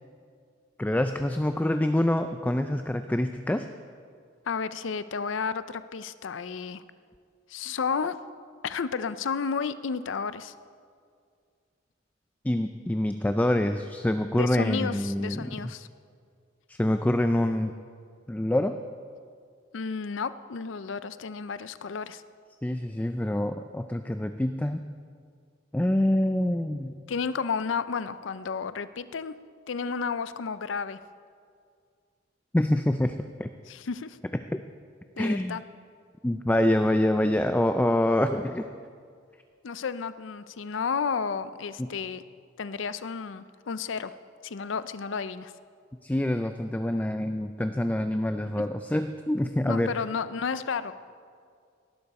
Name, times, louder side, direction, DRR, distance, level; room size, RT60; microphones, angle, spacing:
voice 1, 0.8-3.7 12.4-15.7 16.7-17.7 18.3-18.8 22.6-24.8 25.7-27.1 32.5-33.5 34.5-34.6 35.2-35.6 36.2-38.7 41.8-41.9 46.0-49.9, left 1 dB, 10° left, 8 dB, 0.4 m, -26 dB
voice 2, 4.5-6.8 7.5-8.2 8.6-10.5 14.3-15.9 19.7-22.2 27.1-29.4 29.7-31.0 33.7-34.2 35.2-35.6 39.6-42.2 42.6-44.1 44.4-45.5 48.4-48.5 49.7-50.9, left 5 dB, 70° left, 14 dB, 0.5 m, -32 dB
18.0 x 11.5 x 4.2 m, 2.2 s
head